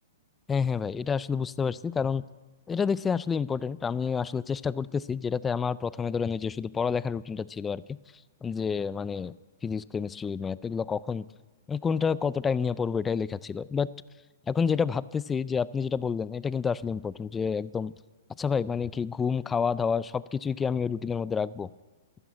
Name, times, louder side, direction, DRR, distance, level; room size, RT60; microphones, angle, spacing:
voice 1, 0.5-2.2 2.7-8.0 8.4-9.3 9.6-11.2 11.7-13.9 14.5-17.9 18.4-21.7, left 6 dB, 15° left, 19 dB, 0.4 m, -29 dB
12.5 x 12.5 x 8.4 m, 1.3 s
hypercardioid pair, 135°, 0 cm